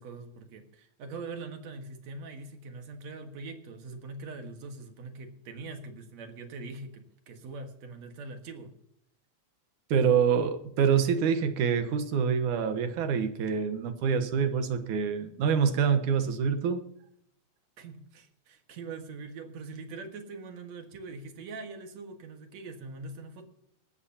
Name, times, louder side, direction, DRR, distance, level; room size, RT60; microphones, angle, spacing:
voice 1, 0.0-8.7 17.8-23.4, right 3 dB, 65° right, 2.7 m, -42 dB
voice 2, 9.9-16.8, right 7 dB, 90° right, 2.7 m, -26 dB
18.5 x 14.5 x 2.9 m
omnidirectional pair, 3.4 m